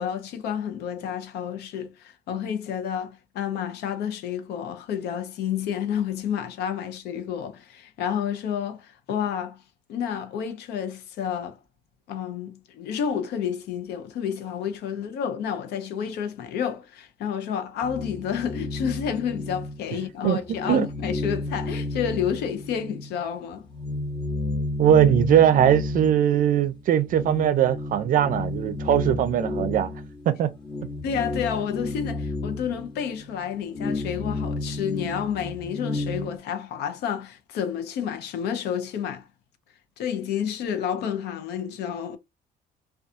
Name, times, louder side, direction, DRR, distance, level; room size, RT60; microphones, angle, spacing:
voice 1, 0.0-9.6 9.9-11.6 12.1-23.7 31.0-39.3 40.0-42.2, left 8 dB, 75° left, 0.6 m, -30 dB
sound 1, 17.8-20.1 20.4-23.1 23.5-36.4, left 2 dB, 30° left, 1.1 m, -32 dB
voice 2, 24.8-29.9 30.3-30.5, right 10 dB, 55° right, 0.4 m, -20 dB
2.6 x 2.3 x 2.4 m
cardioid pair, 110°, 17 cm